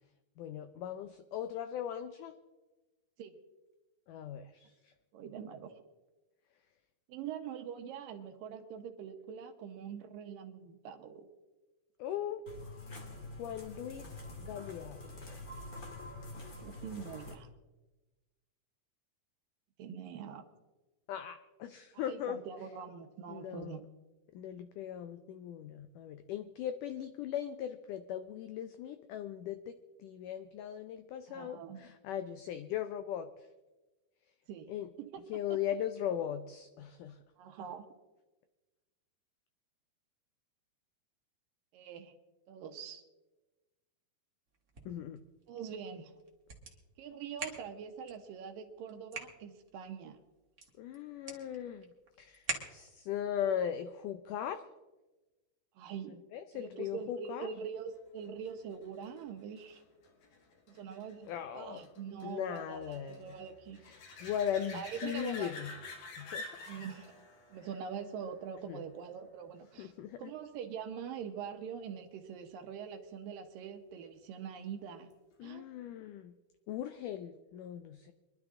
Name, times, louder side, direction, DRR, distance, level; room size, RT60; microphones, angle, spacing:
voice 1, 0.4-2.3 4.1-4.9 12.0-12.8 13.4-14.1 14.4-15.4 21.1-22.4 23.3-23.8 24.3-29.7 30.0-33.3 34.7-34.9 35.3-37.2 44.9-45.2 50.8-51.9 52.2-54.6 56.3-57.5 61.3-61.8 62.2-63.3 63.8-65.7 66.2-66.4 68.7-68.8 69.8-70.3 75.4-76.3 76.7-78.1, left 9 dB, 90° left, 10 dB, 1.8 m, -39 dB
voice 2, 5.1-5.8 7.1-11.3 16.6-17.5 19.8-20.5 21.9-23.8 31.3-31.8 34.5-34.7 35.0-35.2 37.4-37.9 41.7-42.1 42.5-43.0 45.5-46.1 47.0-50.2 55.8-56.2 56.5-59.8 60.7-63.8 64.2-64.3 64.7-65.6 66.7-67.1 67.5-69.9 70.2-75.1 75.4-75.7, right 7 dB, 70° right, 6 dB, 2.5 m, -44 dB
sound 1, 12.5-17.4, left 2 dB, 40° left, 1.3 m, -46 dB
sound 2, 44.5-53.2, right 4 dB, 40° right, 1.1 m, -47 dB
sound 3, 58.2-69.5 75.1-75.2, left 3 dB, 65° left, 3.5 m, -50 dB
24.0 x 11.5 x 3.7 m, 1.1 s
omnidirectional pair, 4.5 m